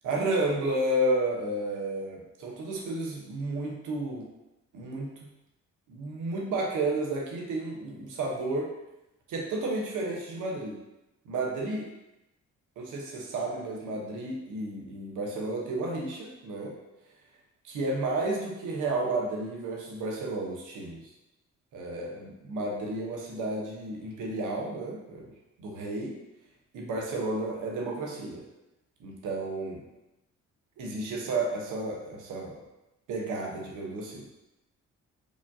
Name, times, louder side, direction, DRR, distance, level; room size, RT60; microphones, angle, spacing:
voice 1, 0.0-4.3 4.7-5.3 5.9-8.7 9.3-10.8 11.2-11.9 12.8-16.7 17.6-21.0 21.7-25.3 25.6-26.1 26.7-28.4 29.0-29.8 30.8-32.6 33.1-34.2, right 2 dB, 85° right, -1 dB, 0.9 m, -32 dB
5.0 x 2.3 x 2.6 m, 0.94 s
cardioid pair, 90°, 30 cm